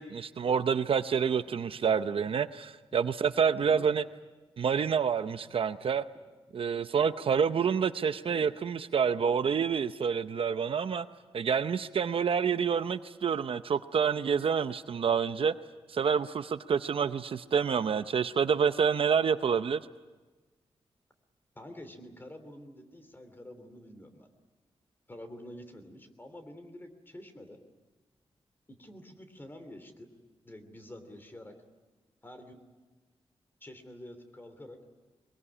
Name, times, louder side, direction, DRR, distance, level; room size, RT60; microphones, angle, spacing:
voice 1, 0.0-4.0 4.6-6.0 6.5-11.1 11.3-15.5 15.9-19.8, right 6 dB, 60° right, 11 dB, 0.7 m, -28 dB
voice 2, 21.5-24.3 25.1-27.6 28.7-30.1 30.4-31.5 32.2-32.6 33.6-34.8, left 1 dB, 20° left, 7 dB, 2.9 m, -48 dB
22.0 x 22.0 x 9.9 m, 1.2 s
wide cardioid pair, 150°, 10 cm